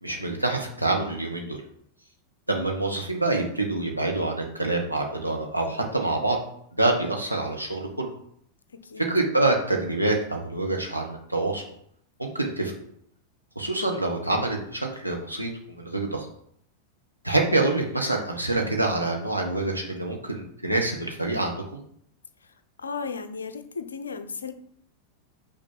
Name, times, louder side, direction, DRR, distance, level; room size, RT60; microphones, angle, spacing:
voice 1, 0.0-1.6 2.5-6.4 6.8-8.1 9.0-11.6 12.2-12.8 13.5-16.3 17.2-21.8, right 2 dB, 90° right, 0 dB, 1.3 m, -26 dB
voice 2, 22.8-24.5, left 5 dB, 70° left, 9 dB, 0.7 m, -35 dB
5.9 x 4.3 x 5.6 m, 0.67 s
figure-of-eight pair, 90°, 0 cm